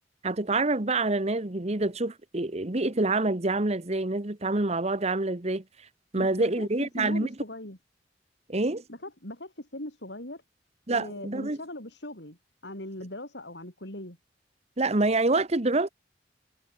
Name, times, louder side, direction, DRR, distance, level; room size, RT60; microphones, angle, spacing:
voice 1, 0.2-5.6 6.1-7.3 8.5-8.8 10.9-11.6 14.8-15.9, right 2 dB, 35° right, 1.4 m, -26 dB
voice 2, 6.1-7.8 8.9-10.4 10.9-12.4 12.6-14.2, left 1 dB, 65° left, 6.4 m, -40 dB
head